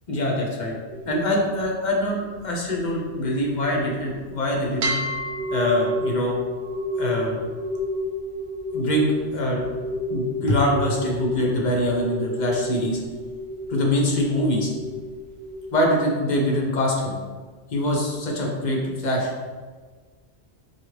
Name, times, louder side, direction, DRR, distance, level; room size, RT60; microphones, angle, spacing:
voice 1, 0.1-0.7 1.1-5.0 5.5-6.3 7.0-7.4 8.7-9.6 10.1-13.0 13.7-14.7 15.7-17.2 17.7-19.3, left 1 dB, 50° left, -2 dB, 0.7 m, -24 dB
sound 1, 0.9-4.3 4.8-15.9, left 1 dB, 80° right, 0.8 m, -31 dB
4.0 x 2.4 x 3.1 m, 1.5 s
omnidirectional pair, 1.1 m